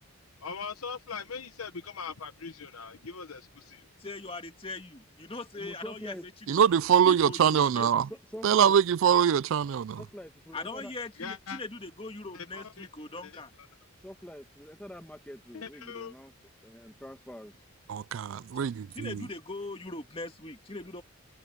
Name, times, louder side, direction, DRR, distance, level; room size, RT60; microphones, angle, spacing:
voice 1, 0.4-3.8 11.2-11.6 12.3-12.9 13.2-13.3 15.5-16.1, left 5 dB, 80° left, 1.0 m, -40 dB
voice 2, 4.0-6.6 7.1-7.9 10.5-13.5 18.9-21.0, left 2 dB, 25° left, 1.8 m, -40 dB
voice 3, 5.5-6.3 7.8-8.7 10.0-10.9 14.0-16.3 16.6-17.5, equal, 5° left, 1.4 m, -44 dB
voice 4, 6.5-8.1 8.4-10.0 17.9-19.3, right 8 dB, 65° right, 0.3 m, -23 dB
head